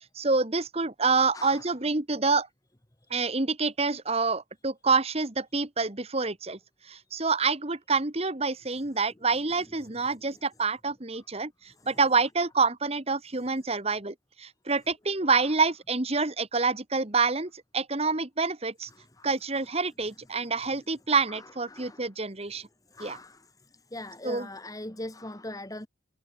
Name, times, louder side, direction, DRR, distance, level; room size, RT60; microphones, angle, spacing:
voice 1, 0.2-2.5 3.1-6.6 6.9-11.5 11.9-18.9 19.2-22.7 23.0-23.2 24.2-24.5, right 4 dB, 35° right, 1.7 m, -27 dB
voice 2, 1.3-1.6 10.3-10.4 15.4-15.5 18.9-19.3 21.3-22.1 22.9-23.4 23.9-25.9, left 1 dB, 20° left, 2.2 m, -41 dB
head